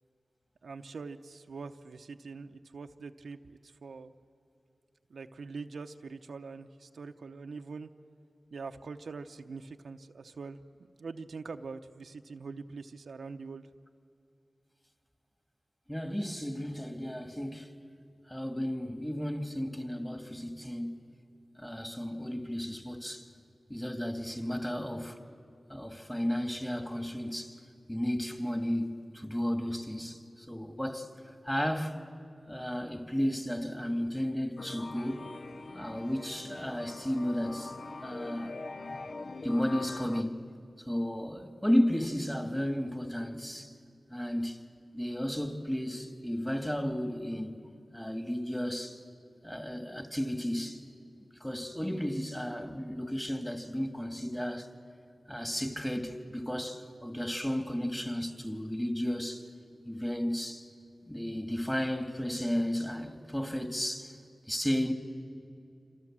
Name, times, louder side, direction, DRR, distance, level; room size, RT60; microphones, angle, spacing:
voice 1, 0.6-4.1 5.1-7.9 8.5-13.7, right 4 dB, 90° right, 0.8 m, -44 dB
voice 2, 15.9-17.7 18.3-21.0 21.6-23.3 23.7-25.2 25.7-27.6 27.9-30.2 30.5-31.1 31.4-32.0 32.5-35.3 35.7-37.8 38.0-38.5 39.4-40.5 40.9-43.7 44.1-44.6 44.9-47.6 47.9-49.0 49.4-50.8 51.4-54.7 55.3-59.4 59.9-60.7 61.1-64.1 64.5-64.9, equal, 10° left, 2.1 m, -33 dB
sound 1, 34.6-40.2, left 3 dB, 60° left, 0.5 m, -43 dB
27.0 x 26.5 x 7.5 m
wide cardioid pair, 60°, 0 cm